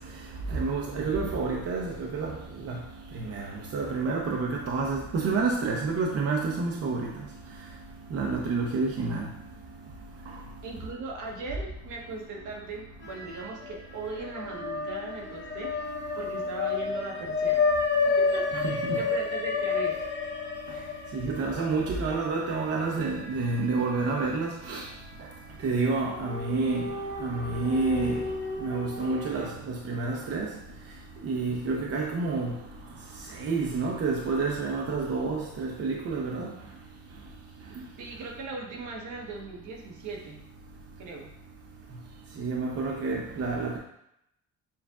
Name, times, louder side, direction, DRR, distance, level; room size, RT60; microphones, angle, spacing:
voice 1, 0.5-2.3 2.6-2.8 3.1-3.5 3.7-7.1 8.1-9.3 18.6-19.0 21.1-24.8 25.6-26.9 27.2-28.2 28.6-30.5 31.2-32.5 33.4-36.5 42.4-43.8, right 3 dB, 50° right, -1 dB, 0.7 m, -29 dB
voice 2, 10.6-15.7 16.1-17.6 18.2-20.0 38.0-40.4 41.0-41.3, right 3 dB, 75° right, -1 dB, 1.1 m, -38 dB
sound 1, 13.0-13.8 14.1-24.5 24.9-25.0 26.1-29.5, left 4 dB, 40° left, 0.8 m, -31 dB
7.0 x 2.5 x 2.4 m, 0.77 s
cardioid pair, 90°, 30 cm